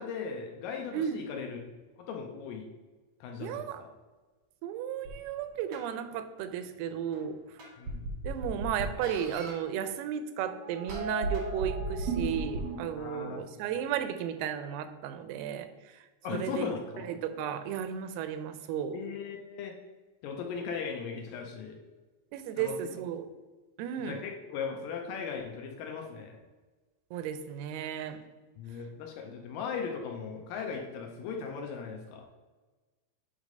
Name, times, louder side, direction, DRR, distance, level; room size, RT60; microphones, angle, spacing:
voice 1, 0.0-1.6 2.0-2.7 3.2-3.9 7.8-8.1 13.0-13.4 16.2-17.1 18.9-19.8 20.2-21.8 22.6-22.7 24.0-26.4 28.6-32.3, left 6 dB, 80° left, 2 dB, 2.1 m, -38 dB
voice 2, 3.4-3.8 4.6-7.4 8.2-19.0 22.3-23.3 23.8-24.2 27.1-28.2, right 9 dB, 90° right, 10 dB, 2.5 m, -34 dB
sound 1, 5.0-5.1 5.7-5.8 7.1-7.2 7.6-9.6 10.4-13.0, right 2 dB, 65° right, 1.2 m, -35 dB
8.2 x 3.3 x 5.2 m, 1.2 s
omnidirectional pair, 4.4 m